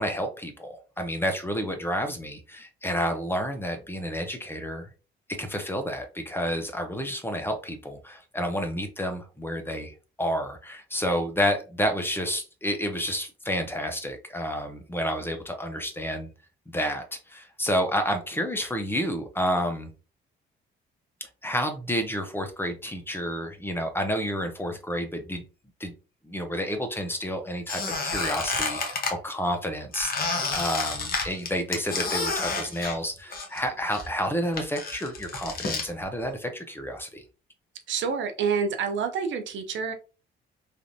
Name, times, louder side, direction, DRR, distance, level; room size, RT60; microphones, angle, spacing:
voice 1, 0.0-4.9 5.3-16.3 16.7-19.9 21.2-25.4 25.8-25.9 26.2-37.2, equal, 10° left, 5 dB, 0.6 m, -30 dB
Squeak, 27.7-29.1 29.9-33.6 33.9-35.9, left 4 dB, 50° left, 1.0 m, -30 dB
voice 2, 37.9-39.9, right 6 dB, 70° right, 7 dB, 0.6 m, -28 dB
3.3 x 2.5 x 2.6 m, 0.33 s
cardioid pair, 90°, 20 cm